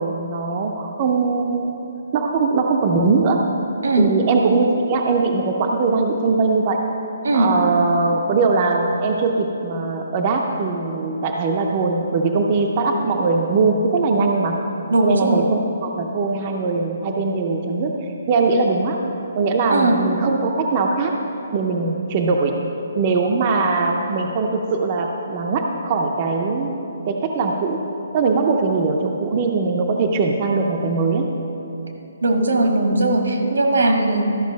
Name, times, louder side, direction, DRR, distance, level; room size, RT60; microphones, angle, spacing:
voice 1, 0.0-1.7 2.1-3.4 4.0-6.8 7.3-14.6 15.0-19.0 19.3-21.1 21.5-22.6 23.0-26.8 27.1-27.8 28.1-31.3 34.1-34.2, right 4 dB, 20° right, 2 dB, 0.4 m, -21 dB
voice 2, 3.8-4.1 7.2-7.5 14.9-15.4 19.7-20.0 32.2-34.2, right 2 dB, 80° right, 3 dB, 1.4 m, -18 dB
12.5 x 5.6 x 5.1 m, 3.0 s
hypercardioid pair, 180°, 0 cm